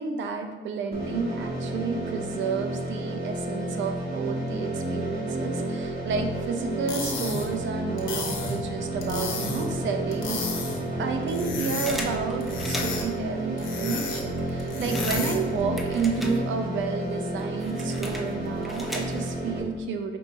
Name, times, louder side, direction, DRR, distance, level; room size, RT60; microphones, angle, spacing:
voice 1, 0.0-10.5 11.0-20.2, right 5 dB, 70° right, 6 dB, 0.6 m, -31 dB
sound 1, 0.9-19.6, right 1 dB, 50° right, 1.3 m, -31 dB
sound 2, 6.7-15.6, left 4 dB, 80° left, 0.8 m, -34 dB
sound 3, 11.9-13.2 13.8-13.9 14.1-16.8 17.1-19.5, equal, ahead, 0.6 m, -37 dB
5.0 x 2.9 x 3.6 m, 1.3 s
cardioid pair, 90°, 20 cm